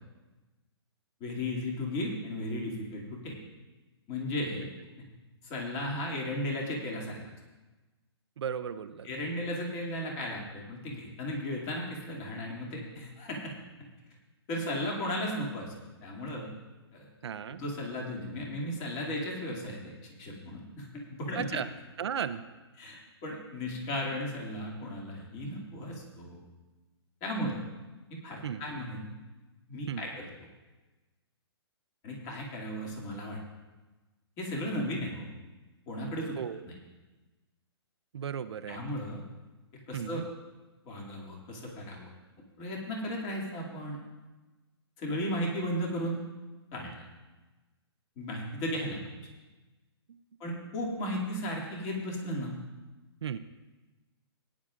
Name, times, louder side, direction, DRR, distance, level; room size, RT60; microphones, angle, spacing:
voice 1, 1.2-3.3 4.1-4.7 5.4-7.2 9.0-13.5 14.5-15.7 16.0-16.5 16.9-17.1 17.5-19.9 20.2-21.6 22.8-26.4 27.2-27.6 28.1-29.1 29.7-30.3 32.0-33.4 34.4-35.3 35.9-36.4 38.7-39.2 39.7-40.2 40.8-42.1 42.6-44.0 45.0-46.2 46.7-47.0 48.2-49.1 50.4-52.6, left 1 dB, 30° left, -2 dB, 2.5 m, -35 dB
voice 2, 8.4-9.1 17.2-17.6 21.3-21.7 22.0-22.4 28.4-28.6 29.9-30.1 36.4-36.6 38.1-38.8 39.9-40.3 50.1-50.2 53.2-53.4, right 8 dB, 75° right, 10 dB, 0.6 m, -35 dB
19.0 x 9.9 x 2.5 m, 1.2 s
hypercardioid pair, 150°, 14 cm